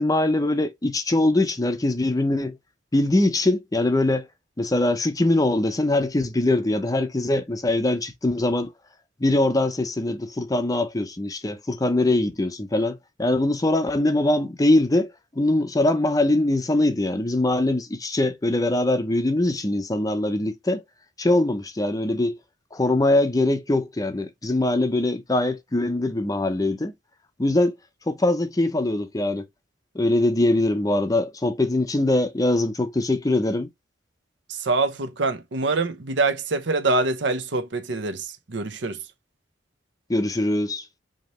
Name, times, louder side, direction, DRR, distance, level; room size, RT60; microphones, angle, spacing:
voice 1, 0.0-2.6 2.9-4.3 4.6-8.7 9.2-20.8 21.2-22.4 22.7-26.9 27.4-27.8 28.1-29.5 29.9-33.7 40.1-40.8, left 2 dB, 20° left, 0.5 m, -22 dB
voice 2, 34.5-39.0, right 3 dB, 70° right, 0.8 m, -25 dB
5.0 x 2.8 x 3.0 m
head